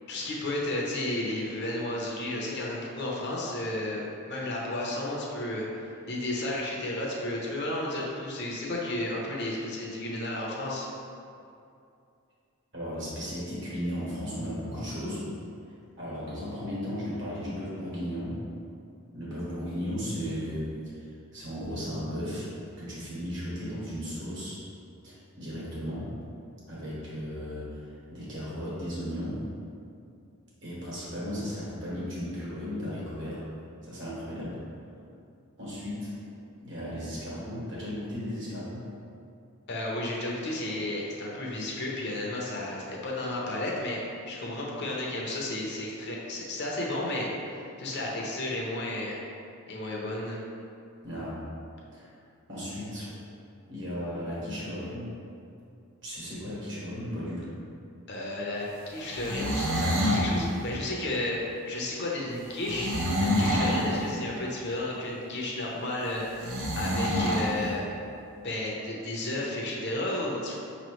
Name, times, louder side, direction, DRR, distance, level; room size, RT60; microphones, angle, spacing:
voice 1, 0.1-10.9 39.7-44.0 44.3-49.2 49.7-50.4 58.1-62.9 63.2-67.8 68.4-70.6, left 1 dB, 50° left, -3 dB, 0.7 m, -33 dB
voice 2, 12.7-15.2 16.0-18.4 19.1-22.5 22.8-24.6 25.0-26.1 26.7-29.4 30.6-33.4 33.8-34.6 35.6-36.2 36.6-38.9 51.0-51.5 51.9-52.1 52.5-53.1 53.7-55.1 56.0-57.6 63.5-63.9, equal, 55° right, -8 dB, 1.4 m, -35 dB
sound 1, 59.0-60.3 62.6-63.9 66.4-67.5, equal, 75° right, 0.7 m, -27 dB
5.6 x 3.0 x 3.0 m, 2.5 s
head